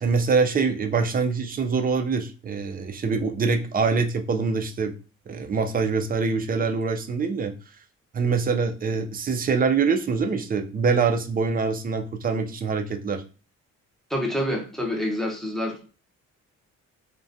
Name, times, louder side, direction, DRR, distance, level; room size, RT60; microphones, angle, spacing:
voice 1, 0.0-4.9 5.3-7.5 8.1-13.2, right 5 dB, 30° right, 6 dB, 0.4 m, -24 dB
voice 2, 14.1-15.8, left 1 dB, ahead, 1 dB, 0.7 m, -27 dB
2.2 x 2.2 x 2.6 m, 0.35 s
cardioid pair, 90°, 30 cm